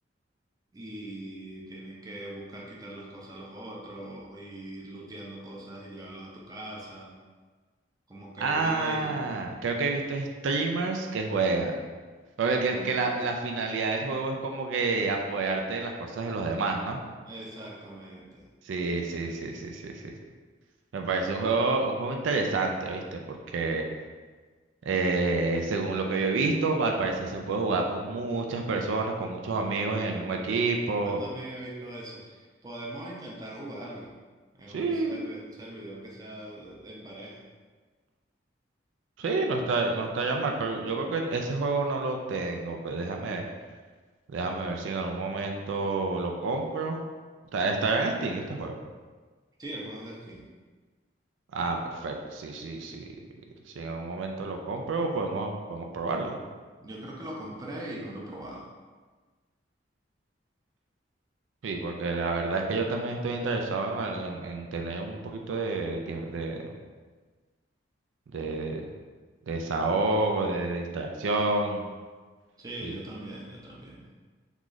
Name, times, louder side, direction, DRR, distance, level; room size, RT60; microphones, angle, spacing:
voice 1, 0.7-7.1 8.1-9.2 12.7-13.0 17.3-18.5 29.9-30.7 31.0-34.1 34.5-37.4 49.6-50.4 56.8-58.7 72.6-74.0, right 1 dB, 20° right, -4 dB, 0.5 m, -41 dB
voice 2, 8.4-11.8 12.4-17.0 18.6-20.1 20.9-23.2 23.5-23.8 24.9-31.2 34.7-35.2 39.2-43.4 44.3-47.0 47.5-48.7 51.5-53.1 53.8-56.4 61.6-66.6 68.3-68.8 69.5-71.8 72.8-72.9, right 3 dB, 80° right, 2 dB, 0.4 m, -29 dB
3.0 x 2.4 x 3.8 m, 1.4 s
head